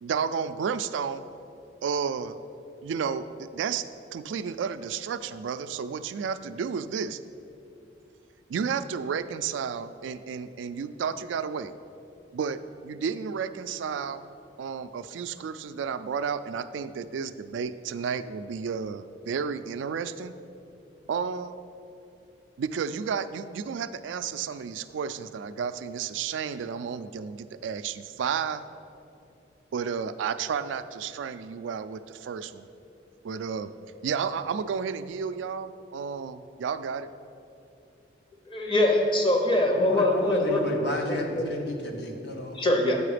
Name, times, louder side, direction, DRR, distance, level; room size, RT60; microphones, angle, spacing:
voice 1, 0.0-1.2 1.8-2.4 2.8-3.9 4.1-7.2 8.5-11.7 12.3-14.3 14.6-20.3 21.1-21.6 22.6-28.6 29.7-32.7 33.2-33.7 34.0-37.1, right 6 dB, 85° right, 12 dB, 0.3 m, -32 dB
voice 2, 38.5-40.6 41.0-41.4 42.5-43.0, left 1 dB, 25° left, 2 dB, 0.8 m, -23 dB
voice 3, 39.7-42.6, left 1 dB, 65° left, 1 dB, 1.0 m, -32 dB
8.4 x 4.8 x 5.0 m, 2.6 s
head